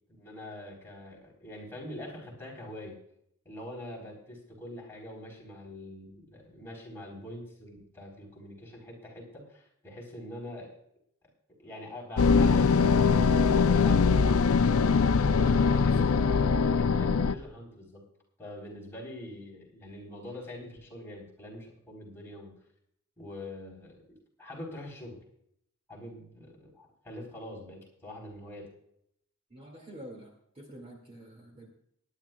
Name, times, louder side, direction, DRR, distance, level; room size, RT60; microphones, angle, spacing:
voice 1, 0.2-3.0 3.4-10.7 11.6-14.2 15.5-18.0 18.4-22.6 23.2-25.2 25.9-28.7, left 1 dB, 10° left, -3 dB, 4.1 m, -44 dB
sound 1, 12.2-17.3, left 5 dB, 70° left, 0.5 m, -22 dB
voice 2, 15.4-16.0 29.5-31.7, right 1 dB, 25° right, 1 dB, 2.2 m, -46 dB
23.0 x 10.5 x 2.3 m, 0.73 s
head